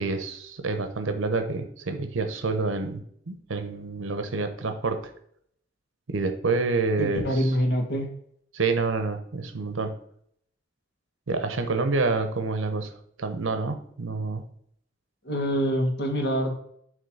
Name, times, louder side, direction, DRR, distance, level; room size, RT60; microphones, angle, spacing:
voice 1, 0.0-5.1 6.1-7.5 8.5-9.9 11.3-12.9 13.2-14.4, right 3 dB, 85° right, 8 dB, 0.8 m, -28 dB
voice 2, 7.0-8.1 15.3-16.5, equal, 60° left, 3 dB, 1.6 m, -25 dB
7.4 x 3.1 x 5.3 m, 0.67 s
head